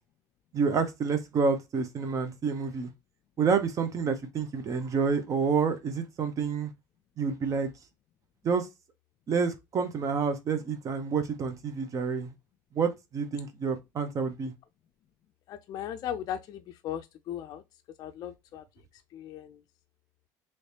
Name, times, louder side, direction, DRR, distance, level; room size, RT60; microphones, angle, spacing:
voice 1, 0.5-2.9 3.4-6.7 7.2-7.7 8.4-8.7 9.3-12.3 12.7-14.5, right 5 dB, 40° right, 0.7 m, -28 dB
voice 2, 15.5-17.6 18.0-18.6 19.1-19.6, left 10 dB, 55° left, 0.4 m, -37 dB
3.2 x 3.1 x 2.7 m
supercardioid pair, 100°, 8 cm